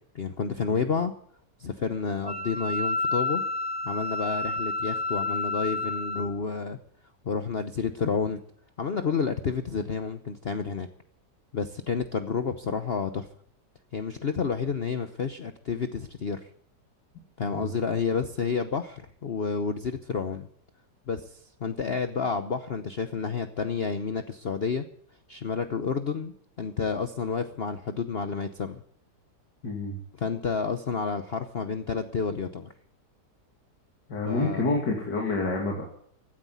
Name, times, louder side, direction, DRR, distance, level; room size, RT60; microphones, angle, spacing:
voice 1, 0.1-1.1 1.6-3.4 3.8-6.8 7.2-8.4 8.8-10.9 11.5-13.3 13.9-16.5 17.4-20.5 21.1-24.9 25.3-28.8 30.2-32.7 34.2-34.7, left 5 dB, 45° left, 8 dB, 0.9 m, -30 dB
Wind instrument woodwind instrument, 2.3-6.3, left 3 dB, 15° left, 1.2 m, -30 dB
voice 2, 17.4-17.7 29.6-30.0 34.1-35.8, left 3 dB, 80° left, -1 dB, 3.1 m, -28 dB
15.5 x 9.7 x 9.5 m, 0.65 s
omnidirectional pair, 1.8 m